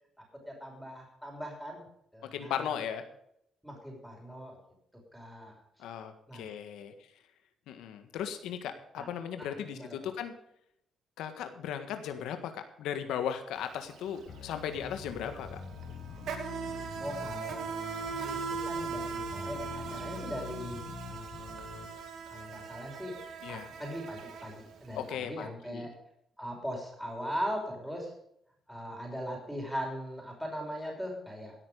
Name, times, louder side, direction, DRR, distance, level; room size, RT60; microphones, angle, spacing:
voice 1, 0.5-1.8 2.1-2.7 3.6-4.6 5.1-5.6 6.3-6.5 9.0-9.1 9.4-10.0 17.0-17.6 18.2-20.8 22.3-23.1 23.5-25.9 26.4-28.1 28.7-31.5, equal, ahead, -1 dB, 5.6 m, -39 dB
voice 2, 2.3-3.0 5.8-6.9 7.7-10.3 11.2-15.6 23.4-23.7 25.0-25.9, left 9 dB, 85° left, 8 dB, 1.6 m, -37 dB
Insect, 13.6-13.7 14.0-25.0, right 5 dB, 70° right, 2.5 m, -39 dB
sound 1, 14.2-21.9, left 5 dB, 65° left, 3.8 m, -45 dB
17.0 x 8.9 x 5.0 m, 0.74 s
cardioid pair, 90°, 0 cm